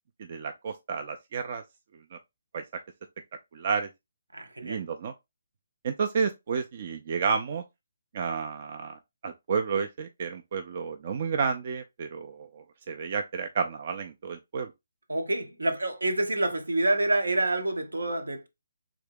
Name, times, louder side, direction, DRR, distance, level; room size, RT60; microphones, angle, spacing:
voice 1, 0.3-1.6 2.5-2.6 3.5-3.9 4.6-5.1 5.8-7.6 8.1-14.7, right 5 dB, 40° right, 0.4 m, -31 dB
voice 2, 4.3-4.8 15.1-18.5, right 2 dB, 75° right, 0.8 m, -27 dB
3.5 x 2.7 x 3.6 m
figure-of-eight pair, 140°, 0 cm